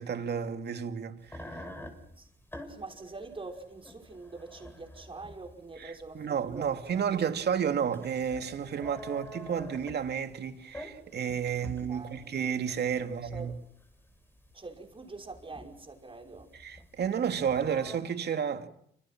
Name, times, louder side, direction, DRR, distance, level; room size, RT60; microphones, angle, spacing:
voice 1, 0.0-1.6 5.8-13.5 16.5-18.7, right 7 dB, 55° right, 2.5 m, -31 dB
sound 1, 1.2-18.0, left 1 dB, 10° left, 6.2 m, -48 dB
voice 2, 2.7-7.0 11.9-12.3 13.0-13.6 14.5-16.5, right 3 dB, 25° right, 5.7 m, -44 dB
28.5 x 26.5 x 6.1 m
cardioid pair, 90°, 20 cm